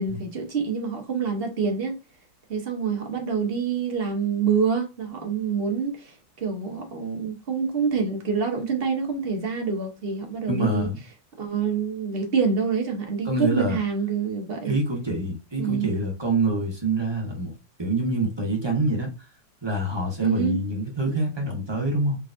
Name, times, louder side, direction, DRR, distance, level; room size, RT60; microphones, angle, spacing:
voice 1, 0.0-2.0 2.5-10.9 11.4-14.8 15.6-15.9 20.2-20.6, right 5 dB, 40° right, 1.0 m, -26 dB
voice 2, 10.5-11.0 13.2-13.8 14.6-17.5 17.8-19.1 19.6-22.2, right 2 dB, 15° right, 1.0 m, -26 dB
3.9 x 3.3 x 2.5 m
omnidirectional pair, 1.9 m